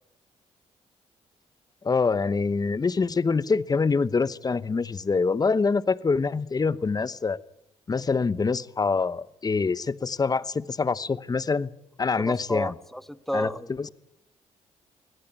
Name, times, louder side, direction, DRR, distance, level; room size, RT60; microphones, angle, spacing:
voice 1, 1.8-7.4 7.9-11.7 12.0-12.7 13.3-13.5 13.8-13.9, left 4 dB, 30° left, 1.0 m, -25 dB
voice 2, 12.0-13.9, equal, ahead, 1.2 m, -32 dB
24.0 x 17.5 x 8.9 m
cardioid pair, 70°, 12 cm